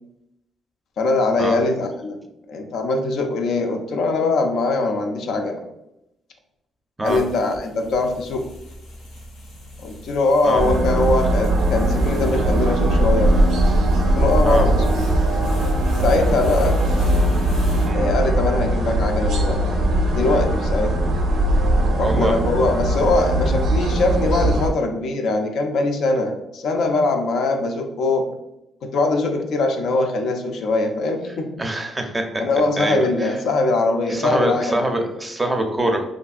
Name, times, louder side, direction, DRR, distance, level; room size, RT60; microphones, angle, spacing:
voice 1, 1.0-2.2 2.5-5.6 7.0-8.5 9.8-13.5 14.2-14.8 16.0-16.8 17.9-19.6 20.1-20.9 21.9-28.3 28.8-31.5 32.4-34.8, left 2 dB, 70° left, 4 dB, 0.4 m, -21 dB
sound 1, 7.0-17.9, left 1 dB, 90° left, 0.8 m, -37 dB
sound 2, 10.6-24.7, right 1 dB, 80° right, 0.5 m, -20 dB
voice 2, 22.0-22.4 31.6-32.2 32.8-33.4 34.1-36.0, right 1 dB, 15° right, 4 dB, 0.5 m, -24 dB
2.6 x 2.6 x 2.4 m, 0.87 s
cardioid pair, 90°, 0 cm